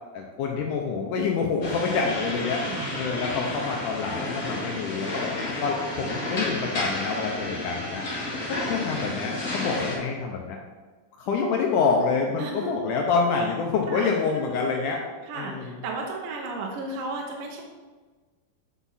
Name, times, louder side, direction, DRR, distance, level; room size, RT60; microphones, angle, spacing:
voice 1, 0.1-2.6 3.0-5.3 5.6-8.1 8.5-10.6 11.2-15.1 15.4-15.8, left 5 dB, 75° left, 1 dB, 2.0 m, -27 dB
sound 1, 1.6-10.0, left 2 dB, 35° left, 1.4 m, -31 dB
voice 2, 2.6-2.9 12.4-12.7 13.9-14.6 15.2-17.6, right 3 dB, 75° right, 0 dB, 2.5 m, -34 dB
8.1 x 6.1 x 4.1 m, 1.4 s
omnidirectional pair, 4.2 m